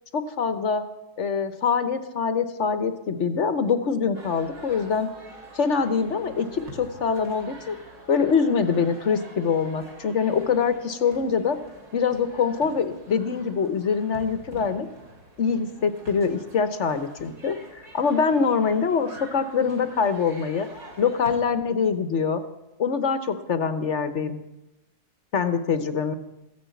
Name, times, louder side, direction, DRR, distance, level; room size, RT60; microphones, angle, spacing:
voice 1, 0.1-0.8 1.2-5.1 5.5-7.8 8.1-11.6 11.9-14.9 15.4-20.7 21.0-22.4 22.8-24.4 25.3-26.1, left 6 dB, 50° left, 10 dB, 1.1 m, -24 dB
sound 1, 4.1-21.4, right 1 dB, 55° right, 3.3 m, -46 dB
15.0 x 9.6 x 8.2 m, 0.95 s
omnidirectional pair, 1.8 m